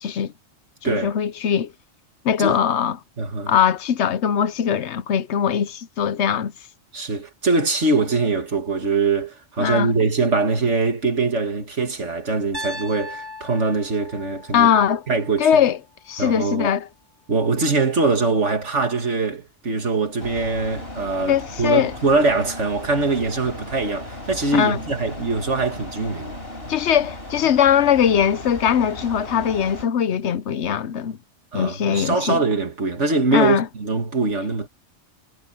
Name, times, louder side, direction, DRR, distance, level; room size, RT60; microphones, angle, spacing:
voice 1, 0.0-0.3 0.8-1.7 2.2-3.0 3.5-6.5 9.6-9.9 14.5-15.0 15.4-15.8 16.1-16.9 21.3-21.9 24.5-24.8 26.7-31.2 31.5-32.4 33.3-33.7, left 8 dB, 70° left, 1.0 m, -20 dB
voice 2, 0.8-1.1 2.4-2.6 3.2-3.5 6.9-14.7 15.1-15.5 16.2-16.7 17.3-26.4 31.5-34.7, right 3 dB, 70° right, 2.6 m, -22 dB
Piano, 12.5-16.6, left 1 dB, 40° right, 6.9 m, -39 dB
sound 1, 20.2-29.9, left 1 dB, 50° left, 5.2 m, -36 dB
omnidirectional pair, 1.2 m